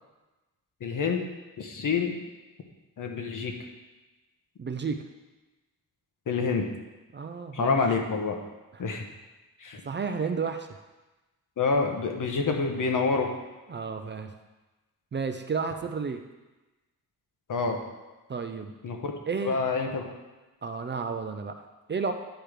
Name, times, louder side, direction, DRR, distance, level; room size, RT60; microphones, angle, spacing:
voice 1, 0.8-1.2 1.6-2.1 3.0-3.5 6.3-6.6 7.5-8.4 8.8-9.0 9.6-9.8 11.6-13.3 17.5-17.8 18.8-19.1 19.4-20.1, left 4 dB, 60° left, 3 dB, 1.1 m, -27 dB
voice 2, 4.6-5.0 7.1-7.8 8.7-8.8 9.8-10.7 13.7-14.3 15.1-16.2 18.3-18.7 19.3-19.6 20.6-22.1, right 5 dB, 30° right, 7 dB, 0.4 m, -32 dB
10.5 x 4.6 x 5.0 m, 1.1 s
wide cardioid pair, 140°, 36 cm